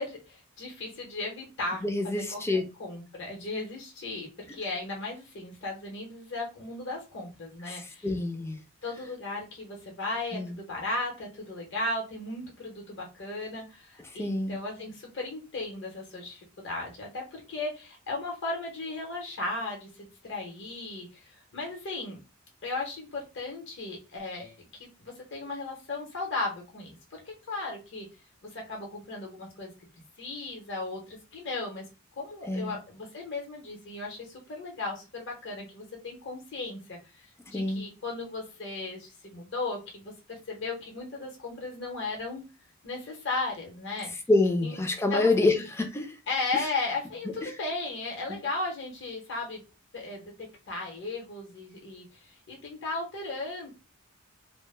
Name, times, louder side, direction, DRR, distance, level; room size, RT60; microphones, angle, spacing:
voice 1, 0.0-2.4 2.8-8.1 8.8-22.2 22.6-28.1 28.4-29.7 30.2-31.8 32.1-42.4 42.8-44.1 44.6-44.8 45.1-45.6 46.3-49.6 49.9-53.7, left 2 dB, 60° left, 0.8 m, -36 dB
voice 2, 1.8-2.6 7.7-8.6 10.3-10.6 14.2-14.6 32.5-32.8 37.5-37.8 44.3-46.2 46.5-46.7 47.4-47.5 48.3-48.4, left 2 dB, 10° left, 0.4 m, -27 dB
2.1 x 2.1 x 3.1 m
head